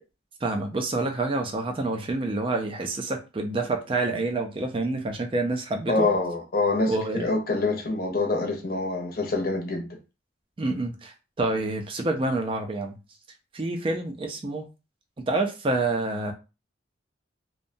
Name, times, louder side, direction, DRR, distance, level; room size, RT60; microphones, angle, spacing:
voice 1, 0.4-6.1 6.9-7.3 10.6-13.0 13.5-14.7 15.2-16.3, right 2 dB, 30° right, 0.4 m, -28 dB
voice 2, 5.9-9.9, left 3 dB, 50° left, 0.7 m, -26 dB
2.7 x 2.1 x 2.6 m
head